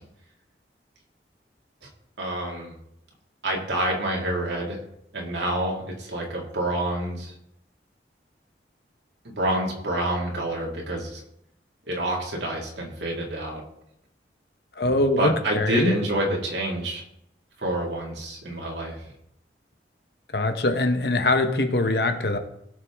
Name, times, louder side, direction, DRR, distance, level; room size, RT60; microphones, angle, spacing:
voice 1, 2.2-2.7 3.4-4.8 5.1-7.3 9.2-11.2 11.8-13.6 15.2-17.0 17.6-19.1, right 1 dB, 80° right, -2 dB, 2.2 m, -27 dB
voice 2, 14.8-16.0 20.3-22.4, left 2 dB, 65° left, 7 dB, 1.2 m, -23 dB
17.0 x 6.6 x 3.6 m, 0.78 s
head